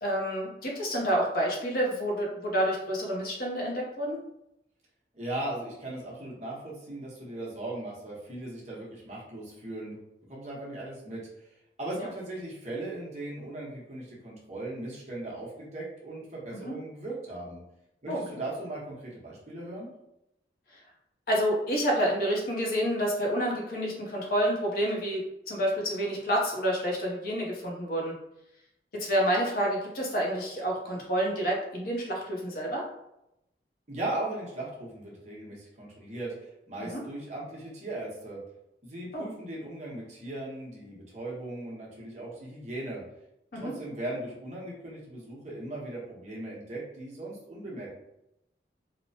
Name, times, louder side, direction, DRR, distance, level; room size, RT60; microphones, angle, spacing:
voice 1, 0.0-4.2 12.0-12.1 16.5-16.7 18.1-18.2 21.3-28.1 28.9-32.8 36.8-37.0 39.1-39.2 43.5-43.7, equal, 55° left, -2 dB, 0.7 m, -29 dB
voice 2, 5.1-10.0 10.3-17.6 18.0-19.9 33.9-38.4 38.8-43.0 43.5-47.9, right 1 dB, 40° right, -5 dB, 0.9 m, -38 dB
2.9 x 2.1 x 2.7 m, 0.84 s
head